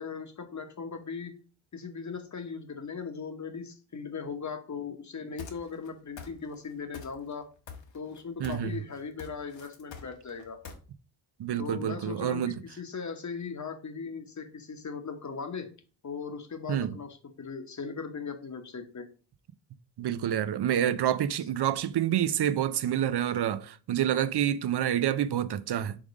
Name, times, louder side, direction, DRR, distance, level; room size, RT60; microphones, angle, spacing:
voice 1, 0.0-1.3 1.7-7.4 7.9-10.6 11.6-15.7 16.0-19.1 24.1-24.3, left 5 dB, 40° left, 1.1 m, -38 dB
sound 1, 5.4-5.9 6.2-6.7 6.9-7.4 7.7-8.7 9.0-10.8, left 6 dB, 70° left, 1.2 m, -44 dB
voice 2, 8.4-8.7 11.4-12.6 16.7-17.0 20.0-26.0, right 10 dB, 60° right, 0.6 m, -28 dB
5.0 x 3.7 x 5.2 m
cardioid pair, 90°, 47 cm